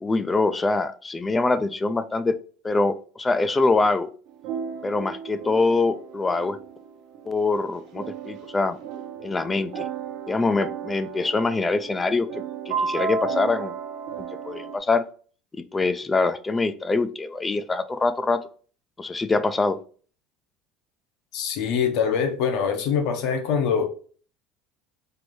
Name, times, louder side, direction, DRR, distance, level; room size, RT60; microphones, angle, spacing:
voice 1, 0.0-2.4 2.6-4.1 4.8-6.6 7.3-8.8 9.2-9.8 10.3-13.7 14.2-15.0 15.5-18.4 19.0-19.8, left 3 dB, 15° left, 12 dB, 0.3 m, -24 dB
sound 1, 4.3-14.8, right 6 dB, 60° right, 0.9 m, -34 dB
voice 2, 21.3-23.9, left 7 dB, 60° left, 5 dB, 0.9 m, -24 dB
4.5 x 2.6 x 3.1 m, 0.41 s
cardioid pair, 145°, 0 cm